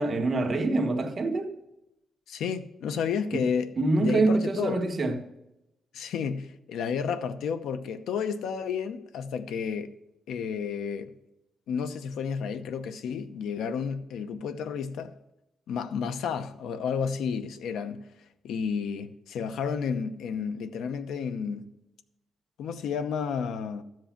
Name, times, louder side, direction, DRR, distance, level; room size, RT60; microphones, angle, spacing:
voice 1, 0.0-1.6 3.3-3.4 3.8-5.2, right 2 dB, 30° right, 1.3 m, -25 dB
voice 2, 2.3-4.8 5.9-9.9 10.3-11.1 11.7-15.2 15.7-18.1 18.4-21.8 22.6-23.8, left 6 dB, 90° left, 0.8 m, -31 dB
13.0 x 7.7 x 5.8 m
cardioid pair, 165°, 0 cm